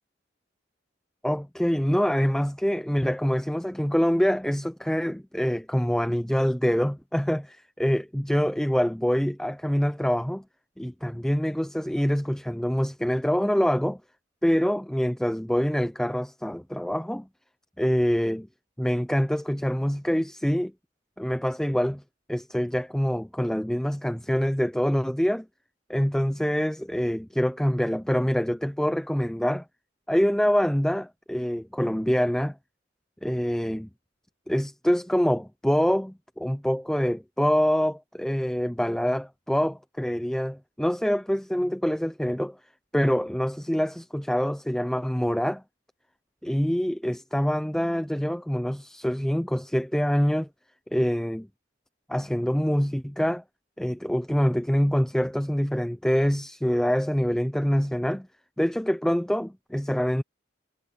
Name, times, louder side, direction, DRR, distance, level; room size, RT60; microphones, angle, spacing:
voice 1, 1.2-10.4 10.8-14.0 14.4-17.3 17.8-18.5 18.8-20.7 21.2-22.0 22.3-25.5 25.9-29.7 30.1-32.6 33.2-33.9 34.5-42.6 42.9-45.6 46.4-50.5 50.9-51.5 52.1-53.4 53.8-58.3 58.6-60.2, equal, 5° left, 0.5 m, -25 dB
head